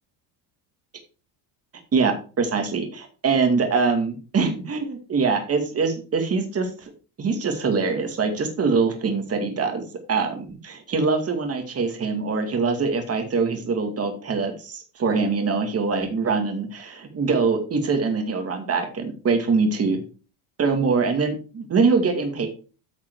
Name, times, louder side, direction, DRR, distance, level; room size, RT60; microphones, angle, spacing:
voice 1, 1.9-6.9 7.2-9.8 10.1-20.0 20.6-22.5, right 4 dB, 30° right, 5 dB, 2.2 m, -23 dB
9.2 x 5.9 x 4.7 m, 0.36 s
cardioid pair, 120°, 48 cm